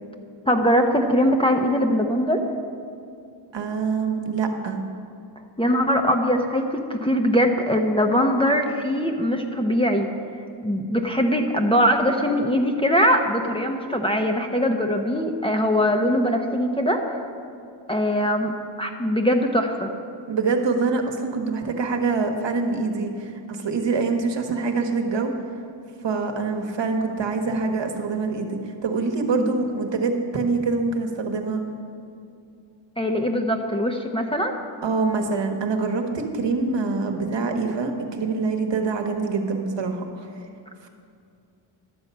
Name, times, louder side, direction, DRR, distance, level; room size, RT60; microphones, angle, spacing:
voice 1, 0.5-2.4 5.6-10.1 10.6-17.3 17.9-18.5 18.8-19.9 29.3-29.5 33.0-34.5, equal, 10° left, 3 dB, 0.7 m, -21 dB
voice 2, 3.5-4.8 20.3-25.3 26.0-31.6 34.8-40.3, right 4 dB, 60° right, 4 dB, 1.3 m, -25 dB
11.5 x 7.1 x 5.4 m, 2.5 s
cardioid pair, 80°, 49 cm